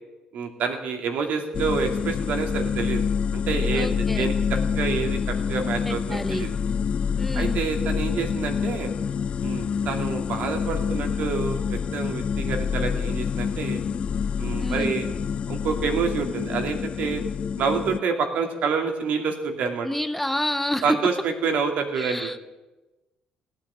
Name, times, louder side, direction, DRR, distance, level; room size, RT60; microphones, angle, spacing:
voice 1, 0.3-3.0 3.3-6.5 7.3-8.9 9.4-13.8 14.4-15.1 15.5-17.2 17.6-19.9 20.8-22.3, right 5 dB, 70° right, 4 dB, 2.5 m, -28 dB
sound 1, 1.5-18.0, left 6 dB, 45° left, 0.4 m, -27 dB
voice 2, 3.7-4.3 5.8-6.5 7.2-7.6 14.6-14.9 19.8-21.0 22.0-22.4, left 1 dB, 5° left, 10 dB, 0.9 m, -29 dB
17.0 x 9.0 x 8.9 m, 1.1 s
supercardioid pair, 60°, 3 cm